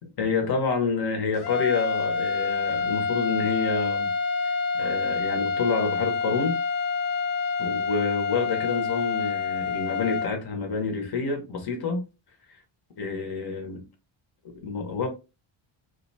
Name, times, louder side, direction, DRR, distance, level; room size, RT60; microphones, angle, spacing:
voice 1, 0.0-4.1 4.8-6.6 7.6-12.0 12.5-12.6 13.0-13.8 14.4-15.1, left 4 dB, 50° left, 0.8 m, -28 dB
sound 1, 1.3-10.3, left 5 dB, 75° left, 0.6 m, -27 dB
2.5 x 2.2 x 2.6 m
cardioid pair, 155°, 49 cm